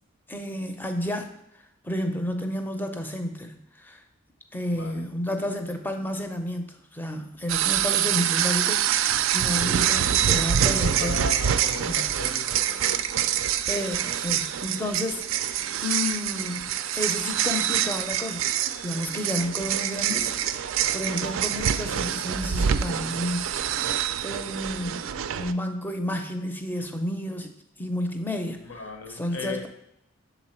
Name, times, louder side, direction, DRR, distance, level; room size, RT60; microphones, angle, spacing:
voice 1, 0.3-1.3 1.8-4.0 4.5-11.2 11.8-12.1 13.7-18.5 18.8-20.3 20.9-23.9 24.2-25.1 25.4-27.5 27.8-28.8 29.1-29.7, left 1 dB, 10° left, 6 dB, 0.5 m, -31 dB
voice 2, 4.7-5.1 9.5-10.0 10.7-13.3 28.6-29.7, left 3 dB, 65° left, 6 dB, 0.8 m, -37 dB
sound 1, 7.5-25.5, right 9 dB, 65° right, 0.3 m, -26 dB
6.8 x 4.0 x 4.3 m, 0.80 s
head